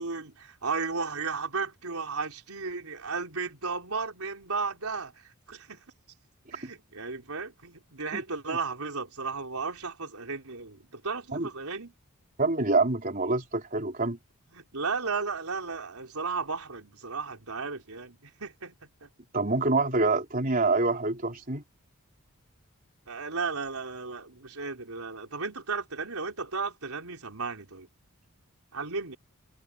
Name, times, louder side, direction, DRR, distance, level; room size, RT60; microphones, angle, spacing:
voice 1, 0.0-5.8 6.5-11.9 14.5-19.1 23.1-27.9 28.7-29.2, right 4 dB, 90° right, 4.0 m, -34 dB
voice 2, 12.4-14.2 19.3-21.6, right 3 dB, 40° right, 4.2 m, -26 dB
head